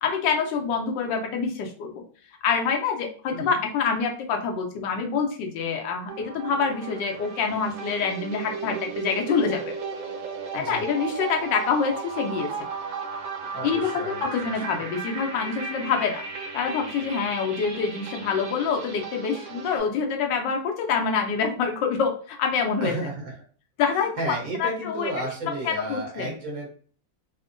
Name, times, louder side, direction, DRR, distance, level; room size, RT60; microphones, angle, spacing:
voice 1, 0.0-2.0 2.4-9.7 10.5-12.5 13.6-16.2 16.5-23.0 23.8-25.1 25.4-26.3, left 5 dB, 75° left, 3 dB, 1.2 m, -26 dB
sound 1, 6.1-19.8, right 5 dB, 85° right, 1.5 m, -35 dB
voice 2, 13.5-14.8 22.8-23.3 23.9-26.7, right 1 dB, 55° right, -2 dB, 1.3 m, -33 dB
3.5 x 2.1 x 2.5 m, 0.43 s
omnidirectional pair, 2.0 m